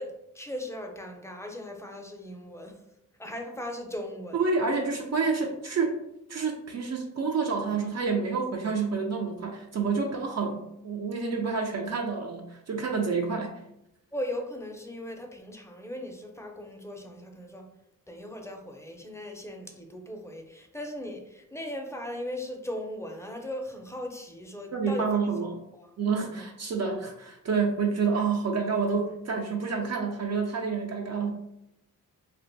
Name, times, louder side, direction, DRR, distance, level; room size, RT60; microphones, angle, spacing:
voice 1, 0.0-2.8 3.2-4.4 14.1-17.7 18.1-25.2 25.7-25.9 26.3-26.4, left 1 dB, 10° left, 2 dB, 0.5 m, -38 dB
voice 2, 4.3-6.0 6.3-13.6 24.7-25.6 26.0-31.3, right 4 dB, 55° right, 2 dB, 0.5 m, -28 dB
2.5 x 2.2 x 3.9 m, 0.83 s
cardioid pair, 80°, 32 cm